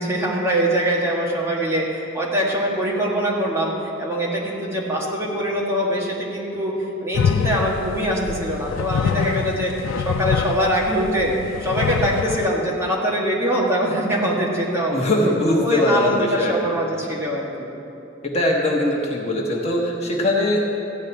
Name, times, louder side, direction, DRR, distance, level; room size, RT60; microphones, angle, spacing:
voice 1, 0.0-3.7 4.0-6.7 7.0-9.7 10.0-11.3 11.6-15.1 15.5-17.7, equal, 15° right, -4 dB, 1.7 m, -23 dB
sound 1, 7.1-12.5, left 7 dB, 85° left, 0.3 m, -25 dB
voice 2, 14.9-16.7 18.2-20.6, left 1 dB, 35° left, -2 dB, 1.3 m, -21 dB
14.5 x 5.3 x 9.3 m, 2.8 s
head